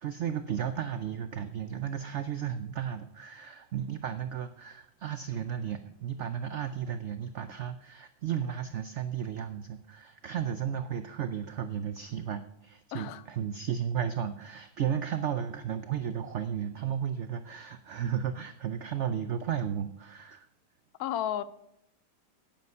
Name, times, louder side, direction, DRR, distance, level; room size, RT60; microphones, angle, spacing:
voice 1, 0.0-20.5, right 9 dB, 80° right, 0.6 m, -34 dB
voice 2, 12.9-13.2 21.0-21.4, left 11 dB, 65° left, 1.0 m, -32 dB
9.5 x 9.1 x 5.5 m
omnidirectional pair, 1.9 m